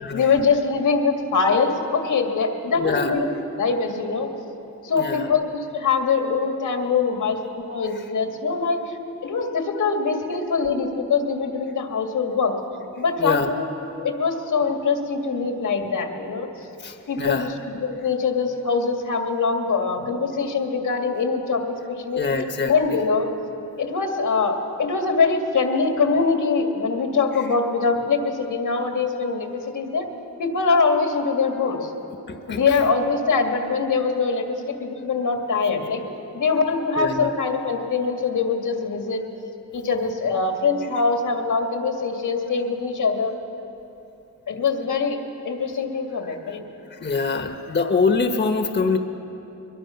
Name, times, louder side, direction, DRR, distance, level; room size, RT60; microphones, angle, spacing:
voice 1, 0.1-3.3 3.6-4.3 4.8-9.0 9.2-12.5 13.0-13.7 14.0-16.5 17.1-21.6 21.9-22.2 22.7-23.3 23.8-30.1 30.4-31.9 32.5-36.0 36.3-39.2 39.7-43.3 44.5-45.2 45.4-46.6, left 4 dB, 85° left, 3 dB, 2.2 m, -23 dB
voice 2, 2.8-3.1 4.9-5.3 13.2-13.5 16.8-17.5 22.1-22.7 32.5-32.6 37.0-37.3 47.0-49.0, left 4 dB, 35° left, 5 dB, 1.1 m, -24 dB
22.5 x 22.0 x 5.8 m, 3.0 s
wide cardioid pair, 110°, 31 cm